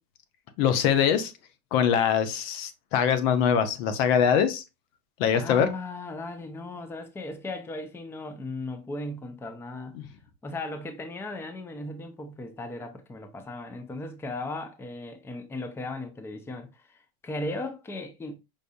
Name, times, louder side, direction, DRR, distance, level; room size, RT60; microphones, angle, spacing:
voice 1, 0.6-1.3 1.7-4.6 5.2-5.7 10.0-10.1, left 8 dB, 75° left, 0.7 m, -23 dB
voice 2, 5.3-10.0 10.4-18.3, left 2 dB, 10° left, 0.4 m, -37 dB
5.0 x 2.6 x 2.2 m
supercardioid pair, 125°, 30 cm